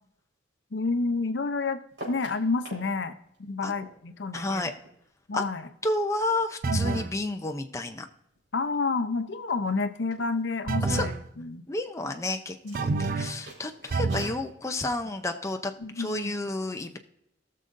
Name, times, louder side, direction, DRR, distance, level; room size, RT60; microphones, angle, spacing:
voice 1, 0.7-3.1 3.4-4.7 5.3-5.7 6.7-7.1 8.5-11.6 12.6-13.1 15.8-16.3, left 3 dB, 70° left, 10 dB, 0.7 m, -30 dB
sound 1, 1.9-2.9 3.2-6.0 6.3-8.1 8.3-8.9 9.2-9.3 9.5-9.7 10.1-11.1 12.6-14.4, right 1 dB, 70° right, 4.4 m, -47 dB
voice 2, 4.3-4.7 5.3-5.4 5.8-8.1 10.8-11.1 11.7-17.0, left 2 dB, 15° left, 5 dB, 0.6 m, -31 dB
sound 2, 6.6-7.2 10.7-11.2 12.7-13.4 13.9-14.4, right 3 dB, 50° right, 0.5 m, -28 dB
18.0 x 6.6 x 2.6 m, 0.76 s
head